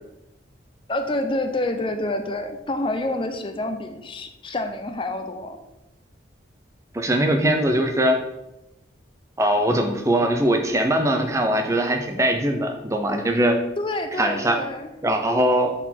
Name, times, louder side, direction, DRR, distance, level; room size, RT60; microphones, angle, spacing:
voice 1, 0.9-5.6 13.8-14.9, left 1 dB, 25° left, 7 dB, 0.5 m, -28 dB
voice 2, 6.9-8.2 9.4-13.6 14.2-14.6 15.0-15.7, right 1 dB, 15° right, 5 dB, 0.6 m, -21 dB
6.1 x 4.0 x 4.3 m, 0.92 s
head